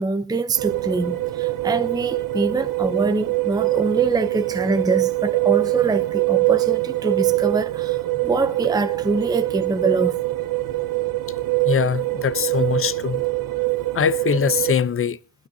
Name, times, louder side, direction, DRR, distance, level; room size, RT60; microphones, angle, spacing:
voice 1, 0.0-10.2, right 3 dB, 10° right, 0.6 m, -24 dB
sound 1, 0.5-14.7, right 19 dB, 55° right, 0.7 m, -23 dB
voice 2, 11.6-13.2 13.9-15.2, left 7 dB, 35° left, 0.6 m, -22 dB
21.0 x 12.0 x 2.7 m
cardioid pair, 130°, 40 cm